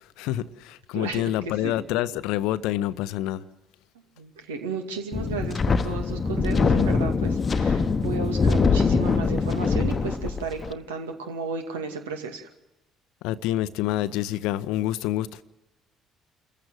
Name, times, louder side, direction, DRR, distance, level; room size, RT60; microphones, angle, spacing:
voice 1, 0.2-3.4 13.2-15.4, left 13 dB, 60° left, 0.7 m, -27 dB
voice 2, 4.2-12.5, right 5 dB, 75° right, 2.3 m, -33 dB
Wind, 5.1-10.7, left 4 dB, 35° left, 1.1 m, -23 dB
28.5 x 15.0 x 7.8 m
figure-of-eight pair, 50°, 0 cm